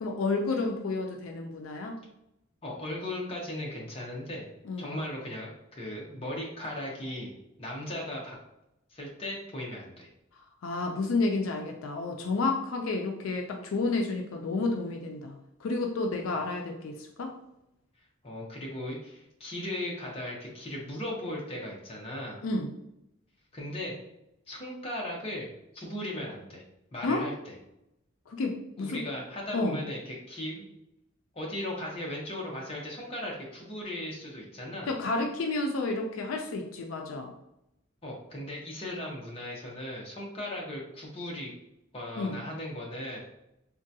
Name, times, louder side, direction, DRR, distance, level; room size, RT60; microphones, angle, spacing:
voice 1, 0.0-2.0 4.6-4.9 10.6-15.3 15.6-17.3 22.4-22.7 27.0-27.2 28.3-29.0 29.5-29.8 34.9-37.3 42.2-42.4, left 3 dB, 75° left, 2 dB, 0.4 m, -30 dB
voice 2, 2.6-4.5 4.8-7.3 7.6-8.4 8.9-10.1 18.2-22.4 23.5-24.0 24.5-25.5 25.7-26.6 26.9-27.3 28.8-30.6 31.3-34.9 38.0-41.5 41.9-43.2, left 1 dB, 25° left, -3 dB, 0.7 m, -37 dB
3.6 x 2.2 x 2.7 m, 0.84 s
head